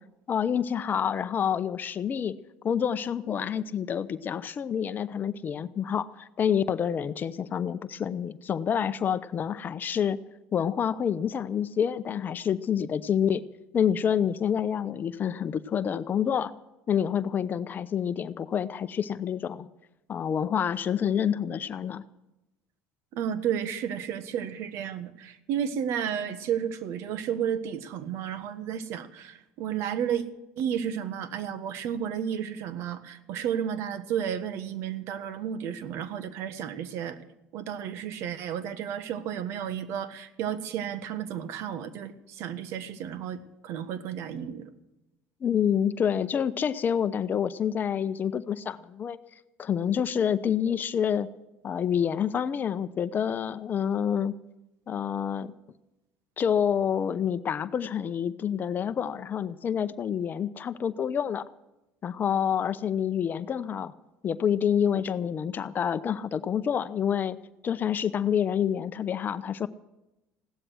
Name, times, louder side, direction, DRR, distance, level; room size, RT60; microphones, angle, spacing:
voice 1, 0.3-2.3 2.6-10.2 10.5-13.4 13.7-16.5 16.9-19.7 20.1-22.0 45.4-49.2 49.6-51.3 51.6-54.3 54.9-55.5 56.4-61.5 62.0-63.9 64.2-67.4 67.6-69.7, left 8 dB, 40° left, 13 dB, 0.7 m, -28 dB
voice 2, 23.1-30.2 30.6-37.2 37.5-44.8, right 9 dB, 70° right, 12 dB, 1.4 m, -32 dB
16.5 x 12.5 x 6.3 m, 0.95 s
supercardioid pair, 90°, 5 cm